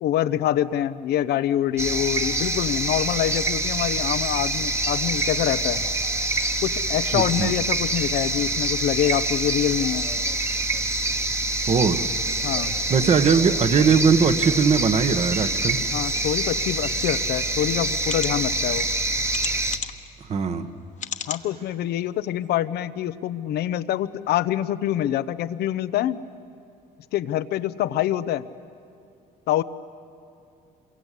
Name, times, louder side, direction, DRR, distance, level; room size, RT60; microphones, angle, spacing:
voice 1, 0.0-5.8 6.6-10.0 12.4-12.8 15.9-18.9 21.3-26.2 27.1-28.4 29.5-29.6, left 12 dB, 75° left, 14 dB, 0.8 m, -25 dB
sound 1, 1.8-19.8, right 2 dB, 15° right, 1.3 m, -26 dB
voice 2, 7.1-7.5 11.7-12.1 12.9-15.8 20.3-20.7, right 5 dB, 40° right, 10 dB, 1.3 m, -20 dB
sound 2, 18.0-18.3 19.3-20.1 21.0-21.5 22.0-22.1 22.4-22.5, left 8 dB, 45° left, 1.2 m, -33 dB
26.5 x 23.5 x 8.4 m, 2.6 s
cardioid pair, 110°, 17 cm